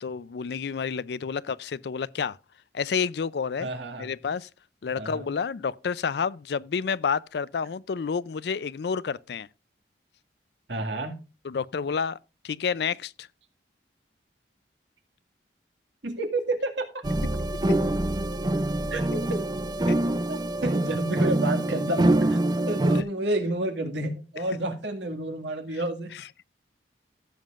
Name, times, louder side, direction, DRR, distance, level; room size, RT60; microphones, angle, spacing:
voice 1, 0.0-2.4 2.7-3.7 4.0-4.5 4.8-9.5 11.4-12.2 12.4-13.3 17.7-17.8 19.9-20.0 26.1-26.2, left 6 dB, 65° left, 0.4 m, -29 dB
voice 2, 3.6-4.1 5.0-5.3 10.7-11.2 16.0-17.0 18.9-19.0 19.3-19.4 20.3-22.4 22.7-26.1, right 2 dB, 85° right, 2.0 m, -30 dB
sound 1, 17.0-23.0, right 1 dB, 25° right, 0.6 m, -25 dB
15.5 x 7.5 x 2.4 m
head